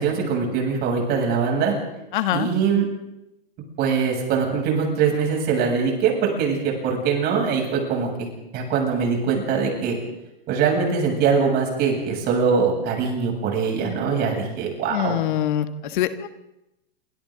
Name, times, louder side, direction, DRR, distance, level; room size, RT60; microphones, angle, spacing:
voice 1, 0.0-1.7 2.3-2.9 3.8-8.3 8.5-10.0 10.5-15.2, right 6 dB, 35° right, 1 dB, 7.9 m, -22 dB
voice 2, 2.1-2.5 14.9-16.3, left 11 dB, 55° left, 9 dB, 1.5 m, -24 dB
28.0 x 26.0 x 4.0 m, 0.89 s
hypercardioid pair, 130°, 29 cm